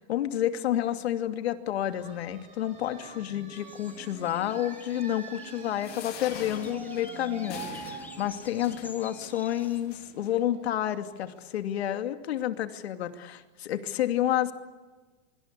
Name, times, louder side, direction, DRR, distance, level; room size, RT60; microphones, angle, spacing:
voice 1, 0.0-14.5, left 12 dB, 75° left, 8 dB, 2.6 m, -30 dB
sound 1, 1.8-11.3, right 5 dB, 20° right, 4.1 m, -46 dB
sound 2, 3.5-9.8, left 3 dB, 5° left, 0.9 m, -50 dB
sound 3, 5.8-10.3 11.0-11.1 11.4-11.5, left 8 dB, 30° left, 3.6 m, -45 dB
25.5 x 25.5 x 8.4 m, 1.3 s
supercardioid pair, 165°, 32 cm